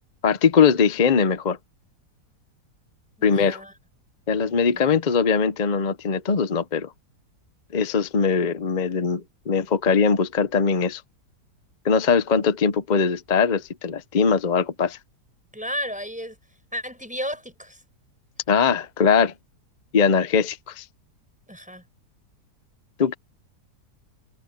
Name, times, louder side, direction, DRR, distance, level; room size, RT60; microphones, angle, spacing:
voice 1, 0.2-1.6 3.2-3.6 4.3-6.9 7.7-11.0 11.8-15.0 18.5-19.3 19.9-20.8 23.0-23.1, left 6 dB, 40° left, 0.7 m, -21 dB
voice 2, 3.2-3.7 4.7-5.0 15.5-16.4 16.7-17.8 21.5-21.8, equal, 5° right, 6.8 m, -33 dB
omnidirectional pair, 1.8 m